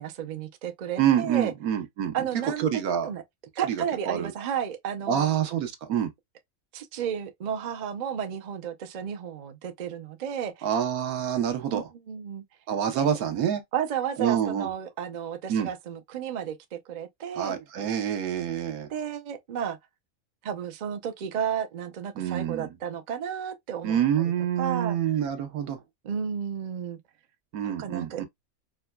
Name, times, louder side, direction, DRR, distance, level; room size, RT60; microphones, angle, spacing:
voice 1, 0.0-1.5 2.1-3.2 3.6-5.3 6.7-10.7 11.7-12.4 13.0-13.2 13.7-17.6 18.9-19.8 20.4-24.0 24.6-25.0 26.0-27.0 27.6-28.2, right 8 dB, 65° right, 0.4 m, -32 dB
voice 2, 1.0-2.1 2.4-3.1 3.7-4.3 5.1-6.1 10.6-11.9 12.7-13.6 14.2-14.7 15.5-15.7 17.4-18.9 22.2-22.7 23.8-25.8 27.5-28.2, right 9 dB, 85° right, 1.3 m, -27 dB
4.8 x 2.1 x 2.2 m
omnidirectional pair, 1.5 m